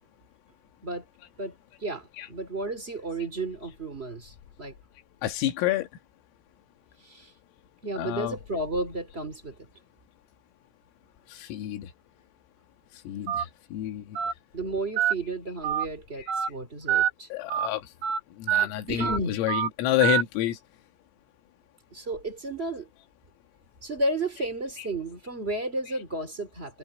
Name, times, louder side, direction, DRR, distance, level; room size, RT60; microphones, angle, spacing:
voice 1, 1.8-4.7 7.0-7.3 7.8-9.7 14.5-17.3 18.6-19.4 21.9-22.9 23.8-26.8, right 2 dB, 25° right, 1.4 m, -33 dB
voice 2, 5.2-5.9 8.0-8.4 11.4-11.9 13.1-13.4 13.7-14.0 17.3-17.8 18.4-20.6 24.8-24.9, left 13 dB, 90° left, 4.5 m, -28 dB
Telephone, 13.3-13.4 14.1-14.3 15.0-15.1 15.6-15.8 16.3-16.5 16.9-17.1 17.5-17.7 18.0-18.2 18.5-18.6 19.0-19.2 19.5-19.7 20.0-20.2, right 10 dB, 60° right, 3.4 m, -25 dB
omnidirectional pair, 5.8 m